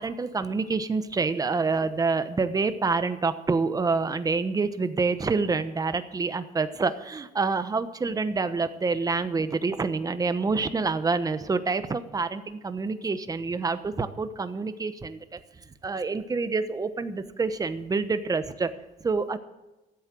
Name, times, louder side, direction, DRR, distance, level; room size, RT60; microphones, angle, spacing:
voice 1, 0.0-15.4 15.8-18.7 19.0-19.4, right 4 dB, 20° right, 11 dB, 1.0 m, -27 dB
14.0 x 8.2 x 7.6 m, 1.0 s
cardioid pair, 110°, 17 cm